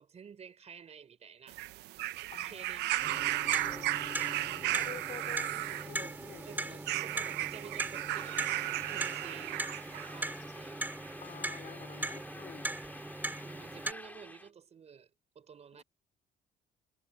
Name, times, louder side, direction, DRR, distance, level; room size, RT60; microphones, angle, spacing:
voice 1, 0.0-1.6 2.4-3.7 6.0-6.2 6.5-8.4 8.8-9.7 10.1-10.9 13.4-15.1 15.3-15.8, right 7 dB, 40° right, 5.0 m, -51 dB
sound 1, 1.5-10.1 11.1-11.2, right 16 dB, 85° right, 1.0 m, -35 dB
voice 2, 2.3-6.8 11.2-12.7, left 8 dB, 45° left, 5.3 m, -49 dB
Clock, 3.0-13.9, right 2 dB, 10° right, 6.0 m, -40 dB
sound 2, 8.1-14.5, left 2 dB, 10° left, 2.5 m, -50 dB
cardioid pair, 110°, 17 cm